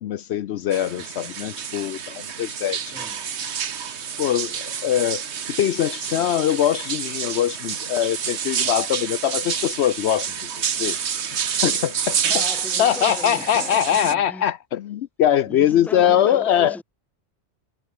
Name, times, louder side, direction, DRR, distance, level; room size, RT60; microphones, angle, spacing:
voice 1, 0.0-2.9 3.4-3.5 4.2-5.2 5.5-10.5 10.8-11.0 11.6-12.2 12.8-16.8, left 10 dB, 70° left, 0.8 m, -22 dB
sound 1, 0.7-14.1, right 7 dB, 70° right, 1.4 m, -28 dB
voice 2, 2.8-3.2 12.2-14.5 15.2-16.8, left 2 dB, ahead, 1.2 m, -37 dB
sound 2, 3.0-12.3 12.6-13.2 14.0-14.1, right 1 dB, 85° right, 7.9 m, -57 dB
omnidirectional pair, 1.2 m